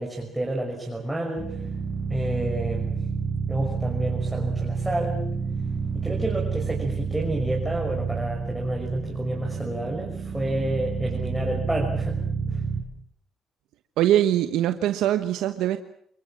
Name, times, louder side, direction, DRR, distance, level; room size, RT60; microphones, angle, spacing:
voice 1, 0.0-1.7 2.1-3.0 3.5-5.2 5.9-12.2 12.5-12.6, right 1 dB, 10° right, -1 dB, 5.8 m, -29 dB
sound 1, 1.4-12.8, right 5 dB, 40° right, 6.5 m, -29 dB
voice 2, 14.0-15.8, right 12 dB, 85° right, 9 dB, 1.1 m, -22 dB
28.0 x 21.5 x 7.5 m, 0.66 s
cardioid pair, 90°, 0 cm